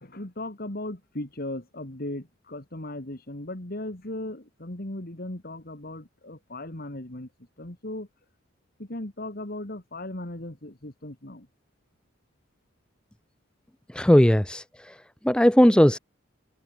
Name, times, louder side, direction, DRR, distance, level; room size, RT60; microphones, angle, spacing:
voice 1, 0.0-7.3 7.6-8.1 8.8-11.5, left 1 dB, 50° left, 2.5 m, -37 dB
voice 2, 13.9-15.0 15.2-16.0, equal, 5° left, 0.5 m, -18 dB
head